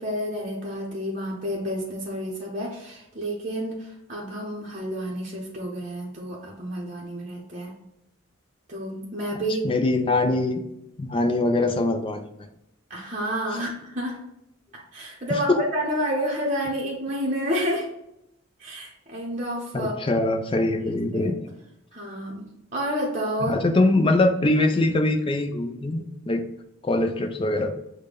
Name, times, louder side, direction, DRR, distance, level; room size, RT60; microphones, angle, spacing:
voice 1, 0.0-7.7 8.7-9.7 12.9-14.2 14.7-17.9 18.6-19.9 20.8-21.3 21.9-22.4 22.7-23.5, equal, 35° right, -3 dB, 0.7 m, -30 dB
voice 2, 9.6-10.6 11.0-12.3 13.5-13.6 15.5-15.6 19.7-21.4 23.4-26.4 26.8-27.7, left 2 dB, 25° left, 7 dB, 0.3 m, -23 dB
6.4 x 2.2 x 3.5 m, 0.82 s
head